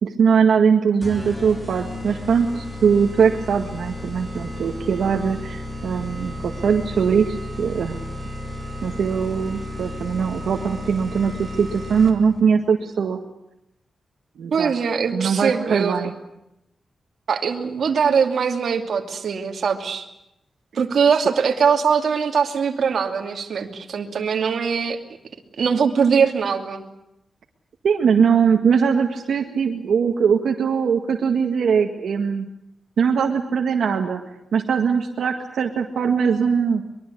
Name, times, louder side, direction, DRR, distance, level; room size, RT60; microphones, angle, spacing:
voice 1, 0.0-8.0 8.8-13.2 14.4-14.7 15.1-16.1 27.8-32.5 33.0-34.2 34.5-36.8, right 6 dB, 85° right, 2 dB, 1.8 m, -21 dB
sound 1, 1.0-12.4, left 1 dB, 5° left, 3.2 m, -33 dB
voice 2, 14.5-16.1 17.3-20.1 20.7-25.0 25.6-26.8, right 6 dB, 65° right, 3 dB, 2.6 m, -21 dB
24.0 x 22.5 x 8.4 m, 0.85 s
wide cardioid pair, 170°, 0 cm